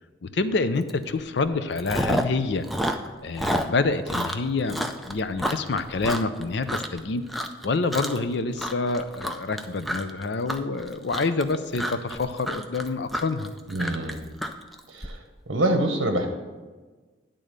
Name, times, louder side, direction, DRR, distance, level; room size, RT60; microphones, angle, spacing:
voice 1, 0.2-2.6 3.2-13.5, left 3 dB, 60° left, 11 dB, 0.5 m, -27 dB
Chewing mastication, 0.9-1.1 1.4-2.4 2.6-7.0 7.3-7.7 7.9-8.3 8.6-15.1, equal, ahead, 0.3 m, -29 dB
voice 2, 13.7-14.3 14.9-16.3, right 1 dB, 70° right, 3 dB, 0.8 m, -26 dB
10.5 x 3.8 x 6.6 m, 1.3 s
head